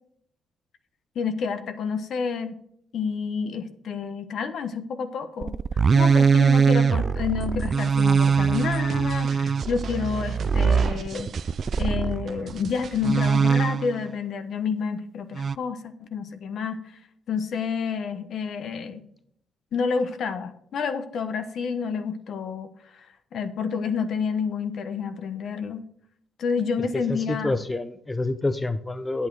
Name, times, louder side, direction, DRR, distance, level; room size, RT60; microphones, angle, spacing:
voice 1, 1.1-2.6 2.9-5.5 5.9-11.3 11.8-17.0 17.3-19.0 19.7-22.7 22.9-23.1 23.3-25.9 26.4-27.5, left 6 dB, 65° left, 10 dB, 1.0 m, -29 dB
sound 1, 5.4-12.3 13.0-14.0 15.4-15.6, right 6 dB, 40° right, 0.3 m, -22 dB
sound 2, 7.4-13.4, right 6 dB, 55° right, 0.8 m, -39 dB
voice 2, 26.8-29.3, left 2 dB, 15° left, 12 dB, 0.6 m, -28 dB
8.8 x 8.4 x 4.7 m, 0.69 s
cardioid pair, 90°, 0 cm